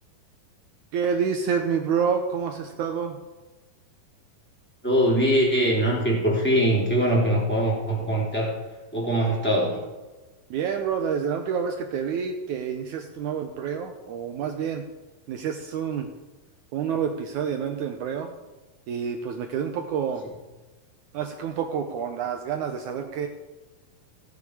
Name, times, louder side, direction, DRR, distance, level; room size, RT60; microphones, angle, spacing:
voice 1, 0.9-3.2 10.5-14.9 15.3-16.1 16.7-18.3 18.9-20.2 21.1-23.3, right 7 dB, 75° right, 4 dB, 1.9 m, -28 dB
voice 2, 4.8-8.5 8.9-9.8, right 1 dB, 5° left, -4 dB, 3.2 m, -22 dB
16.5 x 8.8 x 4.9 m, 1.2 s
omnidirectional pair, 4.2 m